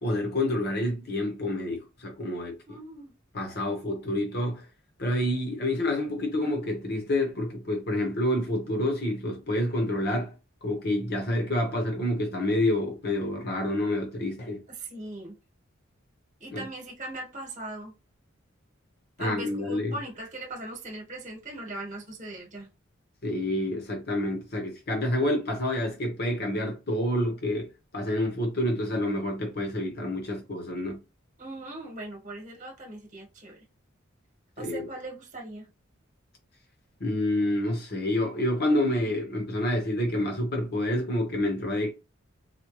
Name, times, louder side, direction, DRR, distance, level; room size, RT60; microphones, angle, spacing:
voice 1, 0.0-2.8 3.3-4.6 5.0-10.3 10.6-14.6 16.5-16.7 19.2-20.0 23.2-31.0 34.6-34.9 37.0-41.9, left 1 dB, 55° left, 1.0 m, -28 dB
voice 2, 2.7-3.1 14.8-15.3 16.4-17.9 19.2-22.7 31.4-33.6 34.6-35.7, right 2 dB, 40° right, 1.1 m, -39 dB
4.2 x 2.2 x 3.0 m
head